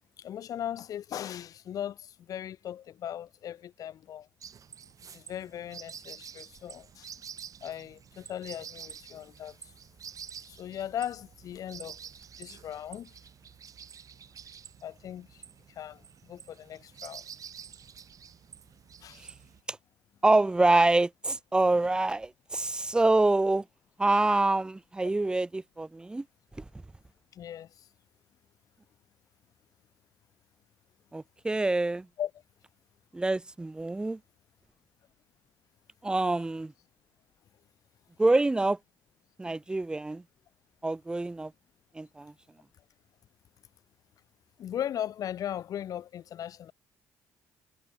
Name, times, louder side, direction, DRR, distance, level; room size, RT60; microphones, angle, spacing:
voice 1, 0.2-4.3 5.1-7.1 7.6-9.6 10.5-12.0 12.4-13.1 14.8-15.4 15.8-17.2 19.0-19.2 27.3-27.8 32.2-32.3 44.6-46.7, left 10 dB, 55° left, 0.5 m, -38 dB
sound 1, 4.4-19.6, right 7 dB, 50° right, 5.0 m, -48 dB
voice 2, 20.2-23.6 24.0-26.2 26.6-26.7 31.1-32.1 33.1-34.2 36.0-36.7 38.2-38.8 39.4-40.2 40.8-41.5 41.9-42.3, right 2 dB, 10° right, 0.3 m, -26 dB
supercardioid pair, 60°, 7 cm